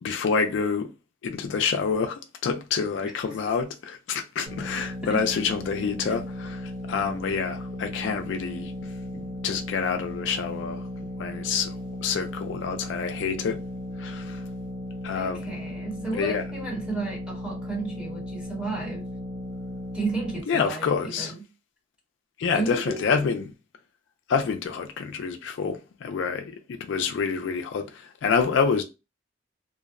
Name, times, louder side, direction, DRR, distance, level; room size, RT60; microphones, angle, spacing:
voice 1, 0.0-0.9 1.2-10.8 11.2-13.6 14.0-14.4 15.0-15.4 16.1-16.4 20.5-21.3 22.4-23.4 24.3-28.8, left 5 dB, 65° left, 0.3 m, -27 dB
voice 2, 3.0-3.5 5.1-5.3 15.1-19.1 19.9-21.4 22.5-23.3, right 3 dB, 5° right, 0.9 m, -33 dB
sound 1, 4.5-20.4, left 1 dB, 50° right, 0.7 m, -36 dB
2.6 x 2.0 x 2.4 m
head